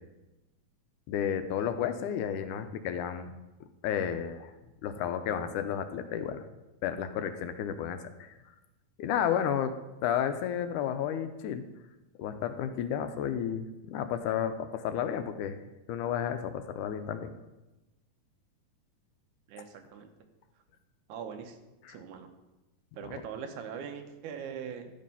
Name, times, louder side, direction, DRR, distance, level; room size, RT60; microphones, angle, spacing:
voice 1, 1.1-3.3 3.8-4.5 4.8-6.4 6.8-8.3 9.0-9.8 10.0-11.7 12.2-15.6 15.9-17.3 21.8-22.0 23.0-23.2, left 9 dB, 90° left, 9 dB, 2.1 m, -32 dB
voice 2, 19.5-20.1 21.1-21.6 21.9-22.3 23.0-24.9, right 7 dB, 75° right, 6 dB, 2.3 m, -41 dB
12.0 x 5.3 x 5.5 m, 1.0 s
omnidirectional pair, 3.6 m